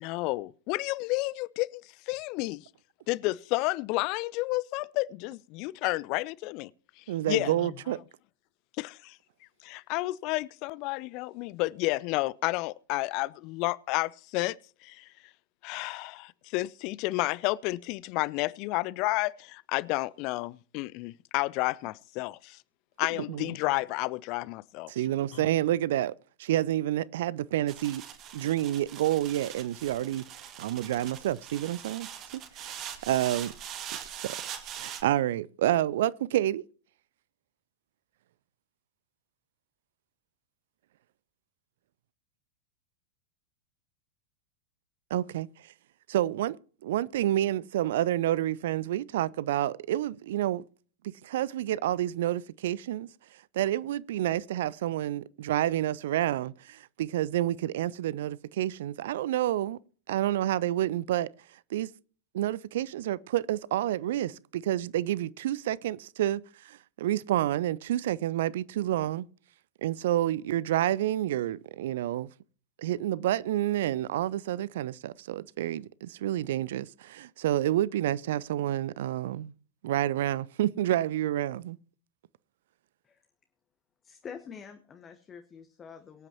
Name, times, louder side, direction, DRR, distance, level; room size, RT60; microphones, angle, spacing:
voice 1, 0.0-2.7 3.1-6.7 7.0-7.7 8.8-9.2 9.6-14.6 14.8-15.1 15.6-22.6 23.0-24.9, left 21 dB, 40° left, 0.4 m, -31 dB
voice 2, 7.1-8.0 23.2-23.5 24.9-26.1 26.4-28.0 28.3-30.2 30.6-32.1 32.3-32.7 33.0-33.5 34.2-34.4 34.8-36.6 45.1-45.5 46.1-46.6 46.8-50.6 51.0-53.1 53.5-59.8 60.1-61.3 61.7-61.9 62.3-69.3 69.8-72.3 72.8-79.5 79.8-81.8, right 13 dB, 55° right, 0.4 m, -29 dB
sound 1, 27.7-35.0, right 9 dB, 35° right, 1.9 m, -42 dB
voice 3, 84.0-86.3, left 6 dB, 25° left, 1.2 m, -46 dB
23.0 x 8.8 x 2.9 m
figure-of-eight pair, 90°, 0 cm